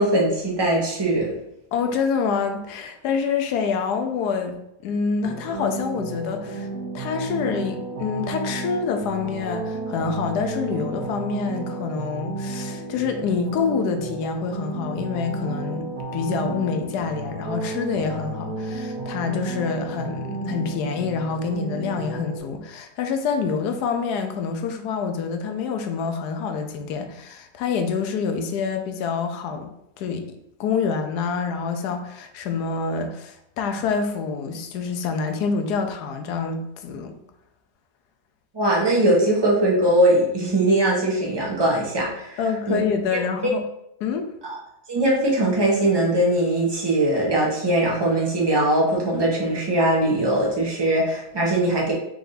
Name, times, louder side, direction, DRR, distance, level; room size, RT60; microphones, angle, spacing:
voice 1, 0.0-1.3 38.5-42.4 42.7-42.8 44.4-44.6 44.9-51.9, right 1 dB, 20° right, -3 dB, 0.8 m, -21 dB
voice 2, 1.7-4.6 4.8-6.7 6.9-29.7 30.0-37.1 42.4-43.6 44.0-44.3, left 5 dB, 75° left, 5 dB, 1.1 m, -27 dB
sound 1, 5.2-22.4, right 2 dB, 70° right, 1.2 m, -32 dB
4.5 x 2.6 x 3.9 m, 0.81 s
omnidirectional pair, 1.9 m